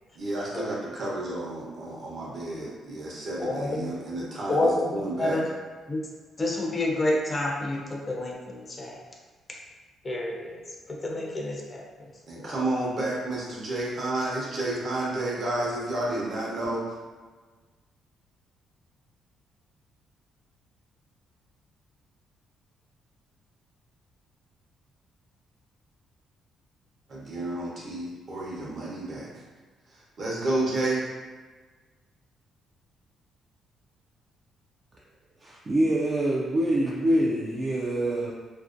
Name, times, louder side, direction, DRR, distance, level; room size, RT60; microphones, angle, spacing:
voice 1, 0.2-5.4 12.3-16.9 27.1-29.3 29.9-31.1, right 2 dB, 55° right, -4 dB, 0.8 m, -31 dB
voice 2, 3.4-3.9 4.5-5.5 5.9-6.1 6.4-9.0 9.5-9.6 10.0-12.6, left 2 dB, 30° left, -1 dB, 0.5 m, -29 dB
voice 3, 35.4-38.3, right 1 dB, 35° right, -5 dB, 0.3 m, -25 dB
2.6 x 2.1 x 2.5 m, 1.4 s
cardioid pair, 90°, 0 cm